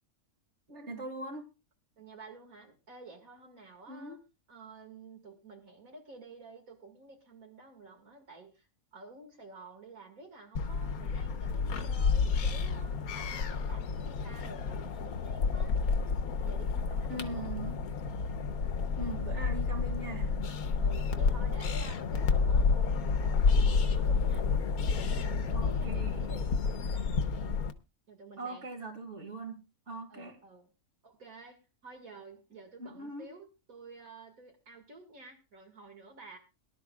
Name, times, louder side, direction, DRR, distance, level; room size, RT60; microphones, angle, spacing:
voice 1, 0.7-1.5 3.9-4.2 17.1-17.8 19.0-20.3 25.5-26.2 28.4-29.6 29.9-30.4 32.8-33.3, right 2 dB, 50° right, 5 dB, 2.6 m, -41 dB
voice 2, 2.0-4.2 4.5-15.7 16.1-17.7 19.0-19.2 20.8-24.5 24.7-27.2 28.1-28.7 30.1-30.7 31.0-36.4, right 3 dB, 70° right, 2 dB, 2.5 m, -51 dB
sound 1, 10.6-27.7, left 5 dB, 85° left, 1.5 m, -30 dB
22.5 x 11.5 x 2.4 m, 0.28 s
omnidirectional pair, 1.5 m